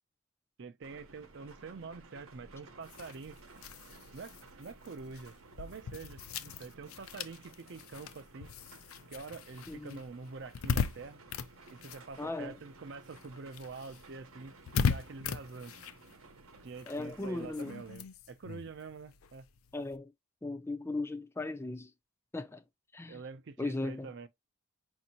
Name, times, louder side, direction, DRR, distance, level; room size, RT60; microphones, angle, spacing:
voice 1, 0.6-3.4 4.1-8.5 9.1-11.2 11.7-15.7 16.6-19.5 23.1-24.3, right 4 dB, 55° right, 0.5 m, -46 dB
sound 1, 0.8-18.0, right 3 dB, 80° right, 0.9 m, -56 dB
sound 2, 2.8-12.7 13.0-20.0, left 6 dB, 80° left, 0.5 m, -39 dB
voice 2, 9.7-10.0 12.2-12.6 16.9-17.7 19.7-20.1 20.4-21.9 22.3-22.6 22.9-23.2 23.6-24.1, left 2 dB, 10° left, 0.4 m, -37 dB
5.2 x 2.6 x 2.8 m
head